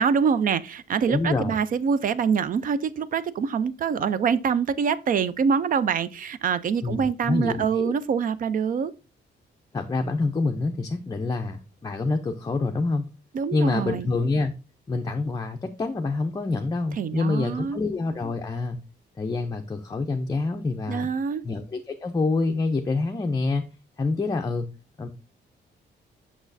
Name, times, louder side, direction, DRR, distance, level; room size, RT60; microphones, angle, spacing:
voice 1, 0.0-8.9 13.3-14.1 17.0-17.8 20.9-21.4, right 6 dB, 50° right, 0.4 m, -25 dB
voice 2, 1.1-1.6 6.8-7.9 9.7-13.0 13.5-14.5 14.9-18.8 19.2-21.1 21.4-23.6 24.0-24.7 25.0-25.1, left 3 dB, 20° left, 0.5 m, -26 dB
6.1 x 6.0 x 2.6 m
cardioid pair, 135°, 18 cm